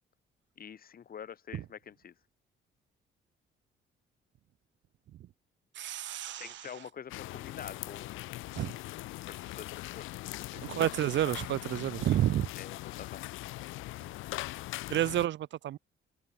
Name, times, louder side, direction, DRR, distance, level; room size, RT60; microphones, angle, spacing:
voice 1, 0.6-2.1 6.4-8.3 9.3-10.1 10.7-10.9 12.5-13.4, left 8 dB, 45° left, 1.4 m, -46 dB
voice 2, 5.8-6.7 8.6-8.8 10.6-12.5 14.9-15.8, right 12 dB, 65° right, 0.9 m, -30 dB
sound 1, 7.1-15.3, left 18 dB, 85° left, 0.5 m, -41 dB
cardioid pair, 90°, 20 cm